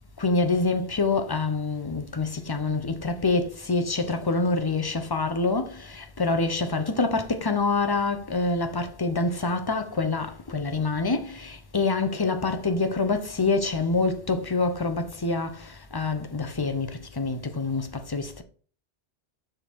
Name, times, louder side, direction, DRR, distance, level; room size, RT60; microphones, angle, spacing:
voice 1, 0.2-18.4, left 3 dB, 25° left, 0.8 m, -26 dB
6.9 x 3.9 x 4.5 m
omnidirectional pair, 1.1 m